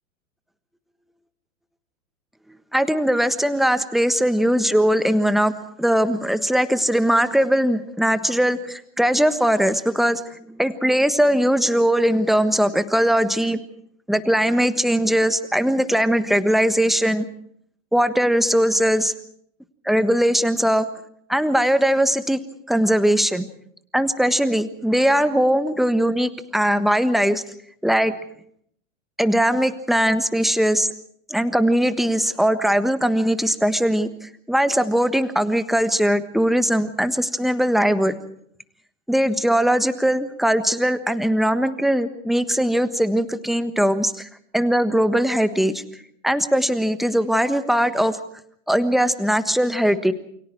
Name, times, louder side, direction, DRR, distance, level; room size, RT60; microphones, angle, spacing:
voice 1, 2.7-5.5 5.8-10.2 10.5-13.6 14.1-17.3 17.9-19.1 19.8-20.9 21.3-22.4 22.7-23.5 23.9-27.4 27.8-28.1 29.2-30.9 31.3-38.2 39.1-44.3 44.5-45.8 46.2-48.2 48.7-50.1, equal, ahead, 11 dB, 1.3 m, -20 dB
28.5 x 24.5 x 4.7 m, 0.68 s
hypercardioid pair, 105°, 41 cm